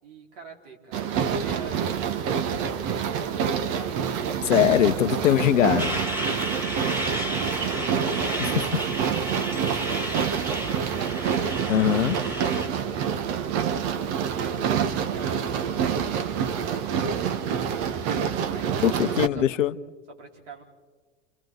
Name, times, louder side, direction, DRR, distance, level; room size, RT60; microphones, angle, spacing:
voice 1, 0.0-4.0 4.5-4.9 6.4-7.8 8.2-9.2 9.6-11.0 14.2-18.0 18.5-19.4 20.1-20.6, right 4 dB, 70° right, 0 dB, 5.0 m, -45 dB
sound 1, 0.9-19.3, right 7 dB, 50° right, 1.5 m, -27 dB
voice 2, 4.4-6.0 8.4-8.5 11.7-12.2 18.8-19.8, left 11 dB, 80° left, 12 dB, 1.0 m, -21 dB
Truck, 5.8-12.7, right 1 dB, 5° right, 3.0 m, -32 dB
29.5 x 28.0 x 4.1 m, 1.4 s
hypercardioid pair, 95°, 37 cm